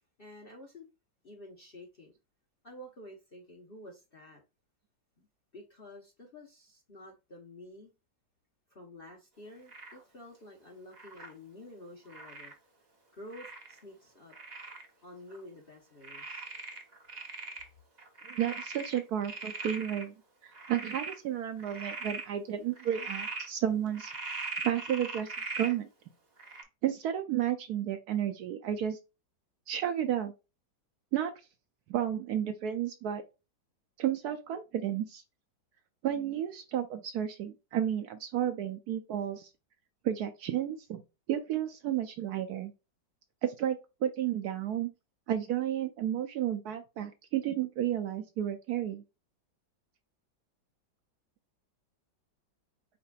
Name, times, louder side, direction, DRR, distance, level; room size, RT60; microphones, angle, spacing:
voice 1, 0.2-0.9 1.2-2.1 2.6-4.4 5.2-5.3 5.5-7.9 8.7-12.5 13.1-14.3 15.0-16.5, left 1 dB, 45° left, 0.8 m, -50 dB
Frog, 9.7-10.0 10.9-11.3 12.1-12.5 13.3-13.8 14.3-14.8 15.3-15.4 16.0-17.7 18.0-20.0 20.5-21.2 21.6-22.2 22.8-23.5 23.9-25.7 26.4-26.6, right 3 dB, 30° right, 0.8 m, -40 dB
voice 2, 18.2-20.1 20.4-24.1 24.6-25.9 26.8-29.0 29.7-30.3 31.1-31.3 31.9-33.2 34.0-35.2 36.0-39.5 40.0-41.0 41.3-42.7 43.4-44.9 45.3-49.0, right 10 dB, 70° right, 1.0 m, -32 dB
4.9 x 4.3 x 2.3 m
omnidirectional pair, 1.9 m